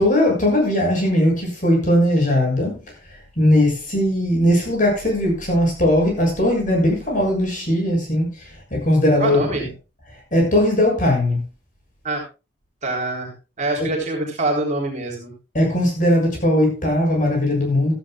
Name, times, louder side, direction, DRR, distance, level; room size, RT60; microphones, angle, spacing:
voice 1, 0.0-2.8 3.4-9.4 10.3-11.4 13.8-13.9 15.5-17.9, left 1 dB, 45° left, 6.9 m, -19 dB
voice 2, 9.2-9.7 12.0-12.2 12.8-13.3 13.6-15.3, right 2 dB, 40° right, 3.7 m, -24 dB
16.0 x 14.0 x 2.3 m
head